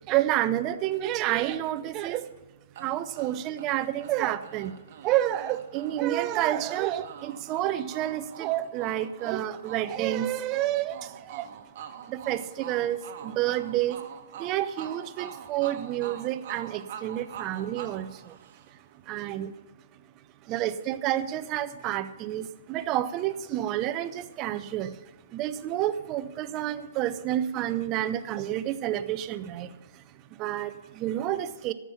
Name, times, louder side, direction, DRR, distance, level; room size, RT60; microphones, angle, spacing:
voice 1, 0.1-2.3 2.8-11.5 12.1-14.0 14.4-18.4 19.1-19.6 20.4-25.0 25.3-30.0 30.3-31.7, right 13 dB, 30° right, 13 dB, 0.6 m, -29 dB
sound 1, 2.7-18.9, right 8 dB, 50° right, 1.2 m, -45 dB
13.5 x 6.1 x 7.0 m, 1.2 s
figure-of-eight pair, 120°, 0 cm